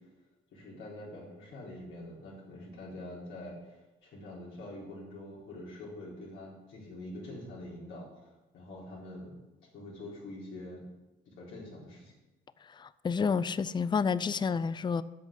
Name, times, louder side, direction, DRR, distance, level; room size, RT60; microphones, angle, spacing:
voice 1, 0.5-9.3 9.7-10.8 11.3-12.1, left 1 dB, 80° left, -4 dB, 4.1 m, -45 dB
voice 2, 12.8-15.0, left 5 dB, 25° left, 17 dB, 0.4 m, -29 dB
8.5 x 6.3 x 8.3 m, 1.1 s
cardioid pair, 90°, 20 cm